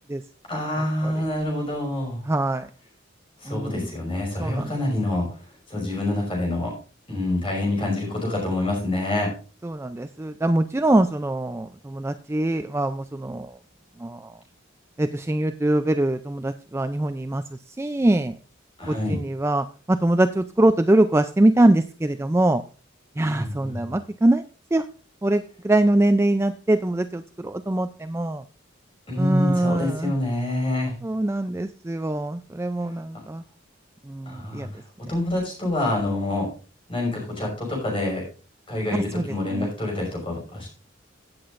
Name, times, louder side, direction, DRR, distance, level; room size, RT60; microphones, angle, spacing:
voice 1, 0.5-2.2 3.4-5.3 5.7-6.7 7.1-9.3 18.8-19.2 23.3-24.0 29.1-30.9 34.3-34.7 35.1-36.5 36.9-38.2 38.7-40.7, left 1 dB, 25° left, -2 dB, 5.5 m, -26 dB
voice 2, 2.3-2.7 3.5-3.9 4.4-4.7 9.6-13.5 14.0-14.3 15.0-17.4 17.8-18.4 18.9-22.6 23.2-24.4 24.7-24.9 25.2-28.4 29.2-30.1 31.0-33.4 34.1-34.7 39.1-39.2 39.5-39.7, right 1 dB, 15° right, 9 dB, 0.3 m, -23 dB
16.5 x 7.7 x 2.5 m, 0.36 s
head